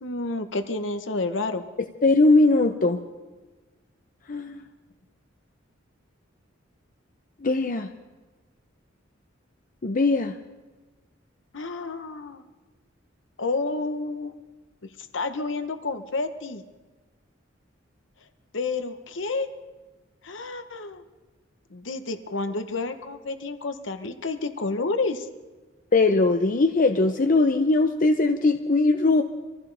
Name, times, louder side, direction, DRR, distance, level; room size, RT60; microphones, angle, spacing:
voice 1, 0.0-1.7 11.5-12.4 13.4-14.3 15.1-16.6 18.5-19.5 20.2-21.0 21.7-25.3, left 3 dB, 70° left, 9 dB, 1.0 m, -30 dB
voice 2, 2.0-3.0 4.3-4.6 7.4-7.9 9.8-10.3 25.9-29.2, left 3 dB, 45° left, 6 dB, 0.7 m, -20 dB
25.5 x 15.5 x 3.4 m, 1.2 s
head